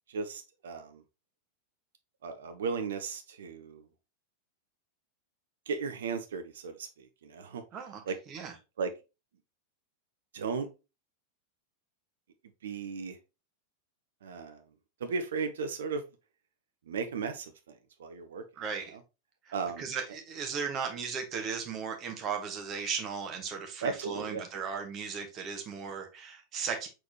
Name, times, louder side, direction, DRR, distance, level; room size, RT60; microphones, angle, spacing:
voice 1, 0.1-1.0 2.2-3.9 5.7-7.6 8.1-8.2 8.8-8.9 10.3-10.7 12.6-13.2 14.2-14.6 15.0-16.0 16.9-18.4 18.9-19.0 19.5-19.9 23.8-24.4, right 5 dB, 60° right, 0.6 m, -35 dB
voice 2, 7.7-8.6 18.6-19.0 19.4-26.9, right 6 dB, 30° right, 1.1 m, -36 dB
4.4 x 4.1 x 2.8 m
figure-of-eight pair, 90°, 0 cm